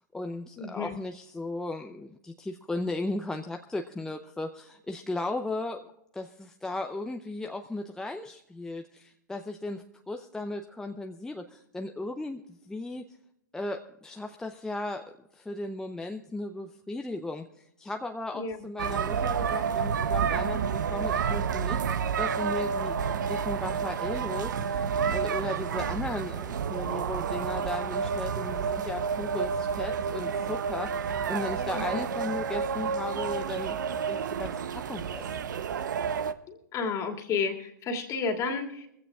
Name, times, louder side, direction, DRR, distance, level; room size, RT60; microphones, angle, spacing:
voice 1, 0.0-5.9 6.1-13.0 13.5-35.5, left 2 dB, 5° left, 4 dB, 0.6 m, -36 dB
voice 2, 0.6-0.9 18.3-18.6 31.7-32.0 36.5-38.9, left 5 dB, 30° left, 2 dB, 2.4 m, -31 dB
sound 1, 18.8-36.3, right 6 dB, 70° right, 0.8 m, -30 dB
22.5 x 15.5 x 2.4 m, 0.82 s
hypercardioid pair, 115°, 10 cm